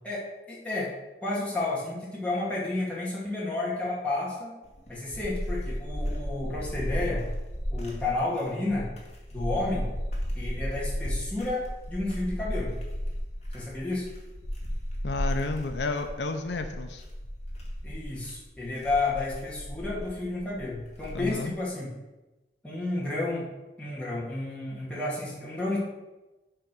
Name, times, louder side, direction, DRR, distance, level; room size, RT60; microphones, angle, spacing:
voice 1, 0.0-0.9 1.2-4.5 4.9-7.2 7.7-8.9 9.3-9.9 10.3-12.7 13.5-14.1 17.8-21.9 22.6-23.5 23.8-25.8, left 2 dB, 10° left, -7 dB, 2.2 m, -31 dB
sound 1, 4.6-21.5, equal, 40° left, 2.0 m, -34 dB
voice 2, 15.0-17.0 21.1-21.5, left 3 dB, 80° left, 6 dB, 0.6 m, -31 dB
10.0 x 3.8 x 6.1 m, 1.1 s
head